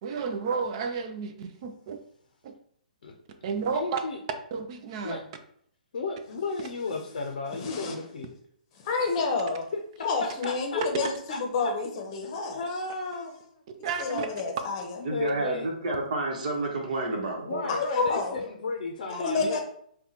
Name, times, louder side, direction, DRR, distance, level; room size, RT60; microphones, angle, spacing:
voice 1, 0.0-2.0 2.4-2.5 3.4-4.0 4.5-5.2 13.8-14.3, right 5 dB, 40° right, 6 dB, 0.4 m, -32 dB
voice 2, 3.7-4.2 5.0-5.2 5.9-8.4 10.2-11.1 11.6-11.7 12.2-13.3 15.0-15.7 17.4-19.6, left 4 dB, 65° left, 3 dB, 0.5 m, -34 dB
voice 3, 7.6-8.0 8.8-9.7 10.0-12.6 13.8-15.0 17.7-18.4 19.1-19.6, left 4 dB, 35° left, 2 dB, 0.8 m, -29 dB
voice 4, 15.0-17.7, right 2 dB, 60° right, 0 dB, 1.0 m, -30 dB
2.8 x 2.2 x 4.0 m, 0.65 s
hypercardioid pair, 145°, 5 cm